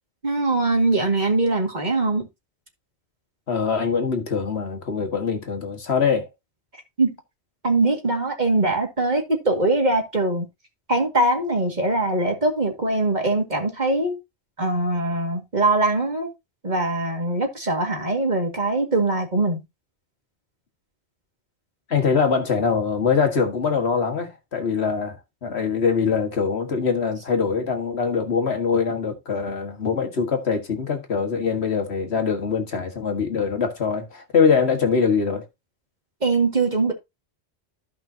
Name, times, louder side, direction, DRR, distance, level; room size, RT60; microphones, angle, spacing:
voice 1, 0.2-2.3 7.0-7.1 7.6-10.5 10.9-14.2 14.6-16.3 16.6-19.6 36.2-36.9, right 2 dB, 40° right, 2.2 m, -22 dB
voice 2, 3.5-6.3 21.9-35.4, left 5 dB, 65° left, 1.8 m, -23 dB
14.5 x 5.5 x 2.8 m
omnidirectional pair, 1.2 m